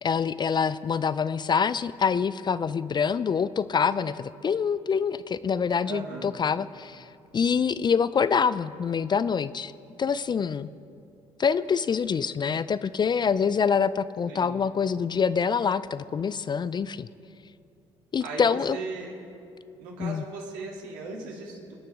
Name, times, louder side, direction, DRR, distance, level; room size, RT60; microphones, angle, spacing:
voice 1, 0.0-7.1 7.3-9.7 10.0-10.7 11.4-17.1 18.1-18.8 20.0-20.2, left 6 dB, 30° left, 16 dB, 0.4 m, -25 dB
voice 2, 5.8-6.4 14.3-14.6 18.2-19.1 19.8-21.7, right 3 dB, 70° right, -2 dB, 3.0 m, -37 dB
26.5 x 10.0 x 3.7 m, 2.5 s
figure-of-eight pair, 50°, 15 cm